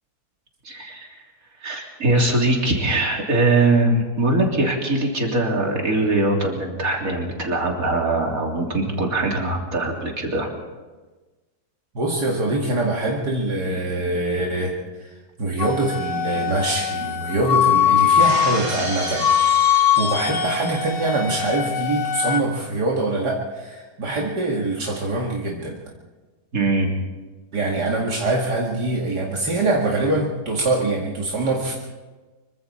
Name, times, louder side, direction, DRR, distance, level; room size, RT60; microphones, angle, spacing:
voice 1, 0.6-1.1 1.6-10.5 26.5-26.9, right 2 dB, 55° right, 0 dB, 3.6 m, -21 dB
voice 2, 11.9-25.8 27.5-31.7, right 2 dB, 75° right, -2 dB, 2.7 m, -24 dB
Wind instrument woodwind instrument, 15.6-22.4, left 9 dB, 55° left, 1.3 m, -21 dB
Shatter, 18.2-21.0, equal, 40° right, 3.8 m, -31 dB
25.5 x 23.5 x 4.3 m, 1.3 s
omnidirectional pair, 1.7 m